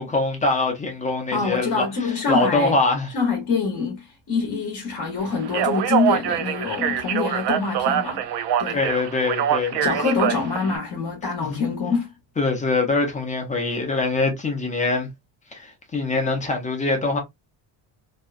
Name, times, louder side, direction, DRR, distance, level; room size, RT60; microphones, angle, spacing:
voice 1, 0.0-3.1 8.7-9.9 11.4-11.6 12.4-15.1 15.5-17.2, left 3 dB, 15° left, 0.6 m, -23 dB
voice 2, 1.3-2.7 3.1-8.3 8.6-8.8 9.8-12.1, left 4 dB, 40° left, 0.8 m, -25 dB
Speech, 5.4-10.8, right 9 dB, 60° right, 0.5 m, -24 dB
2.7 x 2.2 x 2.3 m
cardioid pair, 160°, 48 cm